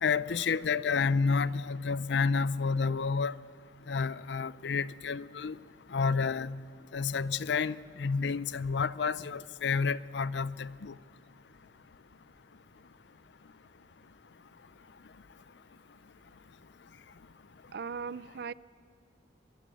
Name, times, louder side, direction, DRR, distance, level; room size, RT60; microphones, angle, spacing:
voice 1, 0.0-3.3 3.9-5.6 5.9-6.6 6.9-10.9, left 5 dB, 70° left, 0.5 m, -30 dB
voice 2, 17.7-18.5, right 6 dB, 60° right, 0.5 m, -38 dB
24.0 x 19.0 x 7.7 m
head